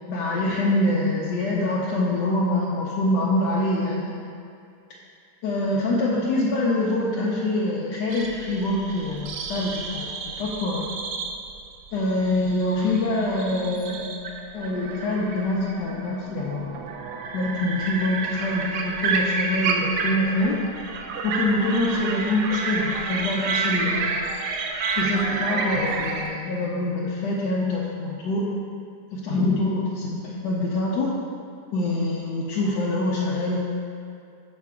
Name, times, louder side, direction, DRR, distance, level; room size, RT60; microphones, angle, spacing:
voice 1, 0.1-4.2 5.4-10.9 11.9-14.1 14.5-16.8 17.3-20.6 21.2-24.2 25.0-28.5 29.1-31.1 31.7-33.6, left 2 dB, 90° left, -5 dB, 1.3 m, -25 dB
sound 1, 8.1-26.3, right 4 dB, 75° right, 1.2 m, -30 dB
6.6 x 5.0 x 3.5 m, 2.4 s
omnidirectional pair, 1.8 m